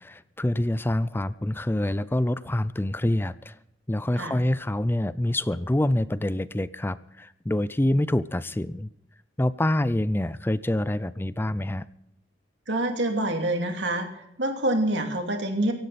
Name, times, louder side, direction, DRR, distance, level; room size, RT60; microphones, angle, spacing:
voice 1, 0.0-3.6 3.9-8.9 9.4-11.9, left 1 dB, 10° left, 16 dB, 0.5 m, -26 dB
voice 2, 12.7-15.7, right 1 dB, 80° right, 4 dB, 2.7 m, -26 dB
17.5 x 16.0 x 4.2 m, 0.79 s
head